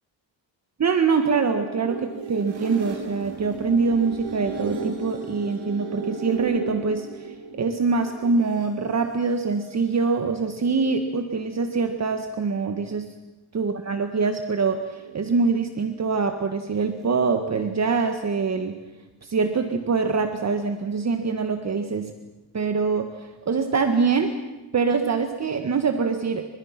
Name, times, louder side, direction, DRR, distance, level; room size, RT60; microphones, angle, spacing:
voice 1, 0.8-13.1 13.5-18.8 19.2-22.1 22.5-24.4 24.7-26.5, right 4 dB, 35° right, 6 dB, 1.7 m, -24 dB
sound 1, 1.3-8.7 9.6-11.1 11.5-12.1 14.6-15.4, right 5 dB, 75° right, 5.7 m, -35 dB
29.5 x 25.0 x 6.0 m, 1.1 s
cardioid pair, 135°, 46 cm